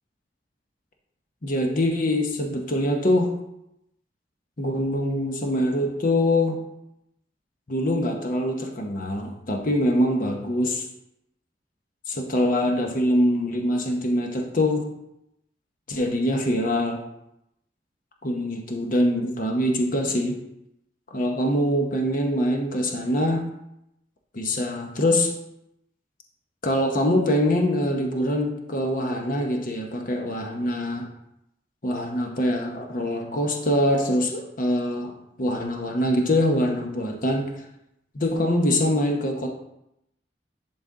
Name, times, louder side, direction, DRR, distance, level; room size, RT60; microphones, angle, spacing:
voice 1, 1.4-3.3 4.6-6.6 7.7-10.8 12.1-14.9 15.9-17.0 18.2-20.4 21.1-23.5 24.3-25.3 26.6-31.1 31.8-37.5 38.1-39.5, left 1 dB, 50° left, 2 dB, 0.9 m, -24 dB
11.0 x 4.1 x 3.7 m, 0.83 s
head